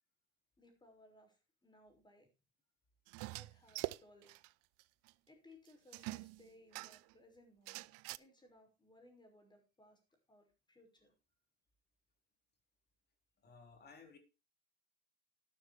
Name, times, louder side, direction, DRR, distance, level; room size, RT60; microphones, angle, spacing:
voice 1, 0.6-2.3 3.4-4.4 5.3-10.0 10.3-11.1, left 1 dB, 15° left, 5.7 m, -64 dB
sound 1, 3.1-4.5 4.8-4.9 5.1-5.2 5.9-7.1 7.7-8.2, right 22 dB, 50° right, 0.5 m, -44 dB
voice 2, 13.4-14.2, left 5 dB, 30° left, 3.8 m, -58 dB
12.0 x 11.5 x 3.4 m
hypercardioid pair, 85°, 34 cm